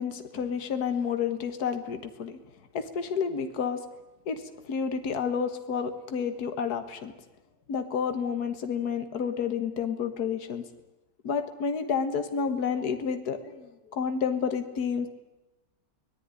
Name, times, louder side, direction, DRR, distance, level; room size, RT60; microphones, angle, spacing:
voice 1, 0.0-2.4 2.7-3.8 4.3-4.4 4.7-7.1 7.7-10.6 11.2-15.1, left 6 dB, 60° left, 8 dB, 2.0 m, -30 dB
23.5 x 18.5 x 9.8 m, 1.0 s
omnidirectional pair, 1.9 m